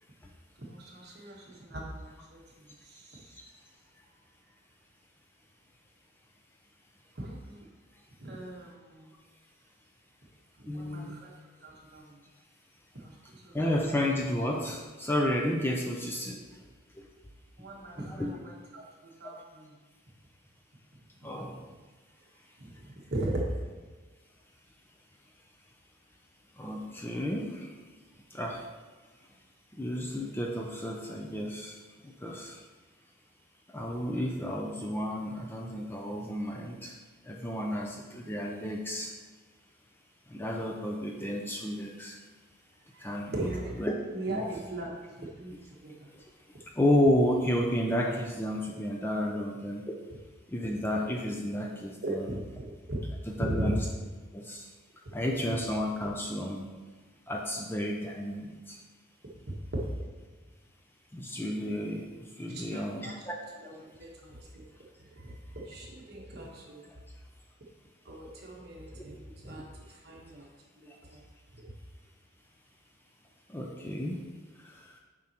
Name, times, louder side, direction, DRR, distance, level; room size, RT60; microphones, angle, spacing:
voice 1, 0.6-3.3 7.1-7.7 8.2-9.1 10.6-11.3 11.6-12.2 13.0-13.1 13.4-13.5 17.6-19.7 21.2-21.4 22.6-23.5 42.9-43.8 44.1-45.6 45.8-46.1 52.0-53.0 59.5-60.0 62.5-63.2 63.6-64.7 65.0-66.9 68.0-70.5 70.7-71.2 71.6-71.7, right 1 dB, 50° right, -2 dB, 1.2 m, -40 dB
voice 2, 10.7-11.1 13.5-16.4 17.0-17.1 18.0-18.4 21.2-21.6 26.6-27.7 28.3-28.6 29.8-31.8 32.0-32.6 33.7-36.9 37.3-39.1 40.3-42.2 43.0-43.4 43.8-43.9 44.3-44.4 46.8-49.8 50.5-52.2 53.4-53.7 54.3-54.7 55.1-56.7 57.3-58.8 61.1-62.0 62.4-63.4 73.5-74.2, left 1 dB, 10° left, 0 dB, 0.4 m, -31 dB
7.1 x 5.0 x 2.9 m, 1.3 s
head